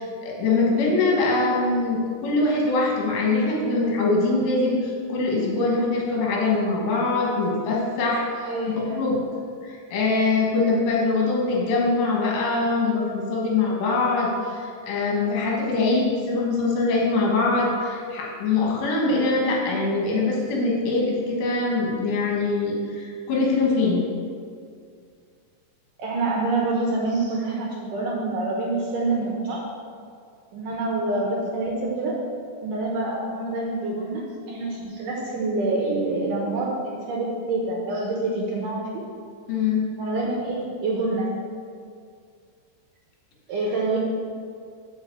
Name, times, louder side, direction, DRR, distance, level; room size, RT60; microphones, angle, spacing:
voice 1, 0.0-8.5 8.9-9.2 9.6-24.0 39.5-39.9, left 3 dB, 70° left, -3 dB, 3.7 m, -23 dB
voice 2, 8.4-9.0 26.0-29.6 30.5-32.2 32.6-39.0 40.0-41.3 43.5-44.0, right 2 dB, 80° right, -2 dB, 1.9 m, -26 dB
7.8 x 5.2 x 7.0 m, 2.2 s
omnidirectional pair, 5.2 m